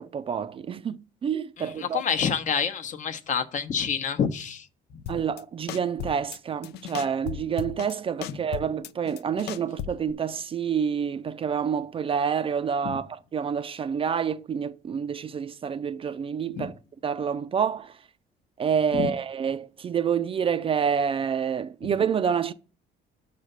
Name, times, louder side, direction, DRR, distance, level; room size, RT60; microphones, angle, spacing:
voice 1, 0.0-2.0 5.1-16.7 17.0-17.9 18.6-22.5, right 7 dB, 35° right, 0.4 m, -28 dB
voice 2, 1.6-4.7 8.3-8.4 12.8-13.0 16.5-16.7 18.9-19.1, left 7 dB, 50° left, 0.8 m, -28 dB
sound 1, 5.1-5.4 5.7-6.4 6.6-7.9 8.2-10.1, left 11 dB, 75° left, 0.4 m, -36 dB
5.6 x 4.9 x 6.6 m
cardioid pair, 110°, 17 cm